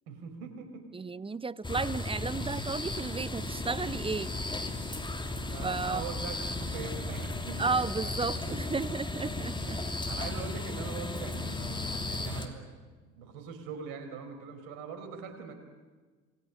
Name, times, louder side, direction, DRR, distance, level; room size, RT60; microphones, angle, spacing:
voice 1, 0.1-0.9 5.5-7.7 8.0-8.7 9.7-12.7 13.1-15.5, right 6 dB, 65° right, 6 dB, 4.7 m, -42 dB
voice 2, 0.9-4.3 5.6-6.0 7.6-9.8, right 4 dB, 15° right, 20 dB, 0.8 m, -33 dB
sound 1, 1.6-12.5, left 2 dB, 10° left, 3.0 m, -35 dB
27.0 x 20.5 x 9.9 m, 1.4 s
figure-of-eight pair, 55°, 39 cm